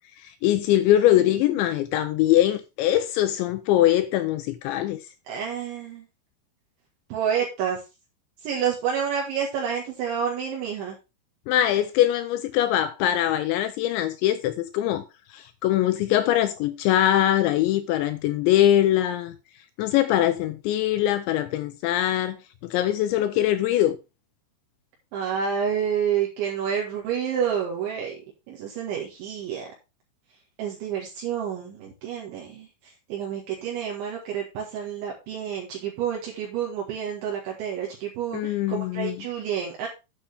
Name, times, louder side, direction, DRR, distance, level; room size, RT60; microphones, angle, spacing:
voice 1, 0.2-5.0 11.5-15.1 15.3-19.3 19.8-22.4 22.6-24.0 38.3-39.2, left 13 dB, 85° left, 2.6 m, -22 dB
voice 2, 5.3-6.1 7.1-7.8 8.4-11.0 25.1-28.2 28.5-29.7 30.6-39.9, right 8 dB, 70° right, 4.0 m, -29 dB
9.1 x 8.9 x 3.5 m
omnidirectional pair, 5.9 m